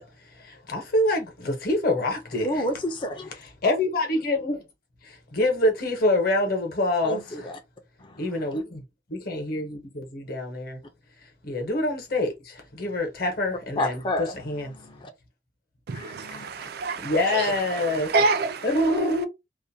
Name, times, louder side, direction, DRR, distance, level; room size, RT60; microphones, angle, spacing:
voice 1, 0.0-2.6 3.6-4.6 5.0-7.5 8.2-8.8 9.1-10.8 11.4-14.7 17.0-18.1 18.6-19.3, left 1 dB, 55° left, 0.9 m, -26 dB
voice 2, 2.4-3.3 7.0-7.6 8.0-8.2 13.8-14.4 14.7-15.1 15.9-16.5, equal, 25° left, 0.4 m, -30 dB
voice 3, 15.9-19.1, right 3 dB, 55° right, 0.4 m, -28 dB
2.4 x 2.1 x 2.6 m
head